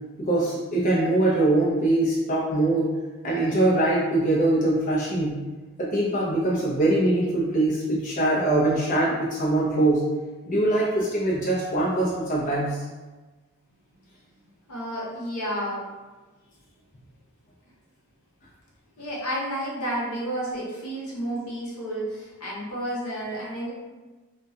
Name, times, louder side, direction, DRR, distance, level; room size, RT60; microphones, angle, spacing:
voice 1, 0.2-2.9 3.2-5.4 5.8-10.0 10.5-12.8, right 2 dB, 35° left, -6 dB, 0.4 m, -23 dB
voice 2, 14.7-15.8 19.0-23.7, right 1 dB, 85° left, -6 dB, 0.8 m, -31 dB
2.3 x 2.2 x 2.6 m, 1.2 s
head